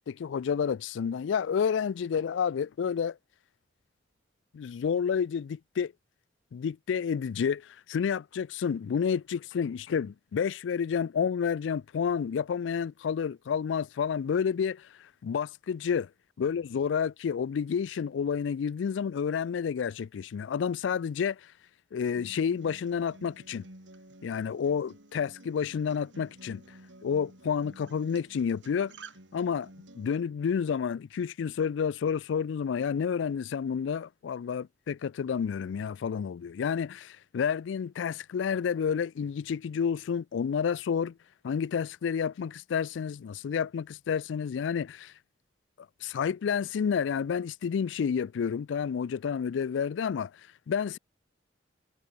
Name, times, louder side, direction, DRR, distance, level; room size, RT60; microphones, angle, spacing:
voice 1, 0.1-3.2 4.5-5.9 6.5-14.9 15.2-16.1 16.4-21.4 21.9-23.6 24.2-26.6 27.0-28.9 29.3-29.7 30.0-41.1 41.4-45.1 46.0-50.3 50.7-51.0, left 7 dB, 75° left, 0.3 m, -30 dB
Acoustic guitar, 22.2-30.1, right 2 dB, 75° right, 5.9 m, -52 dB
head